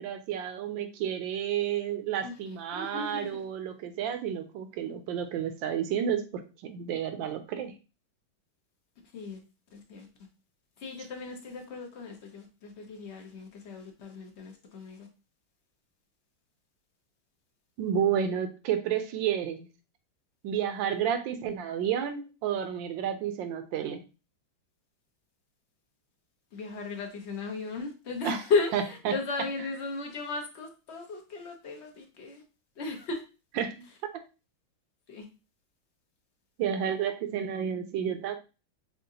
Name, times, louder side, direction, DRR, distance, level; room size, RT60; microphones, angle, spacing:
voice 1, 0.0-7.7 17.8-19.7 20.4-24.0 28.2-28.4 28.7-29.1 33.6-33.9 36.6-38.4, right 9 dB, 75° right, 8 dB, 1.3 m, -31 dB
voice 2, 2.7-3.4 9.1-9.4 9.7-10.1 10.8-15.1 26.5-32.4 32.8-33.2 35.1-35.2, left 4 dB, 50° left, 2 dB, 0.8 m, -35 dB
6.3 x 2.5 x 2.7 m, 0.31 s
omnidirectional pair, 2.2 m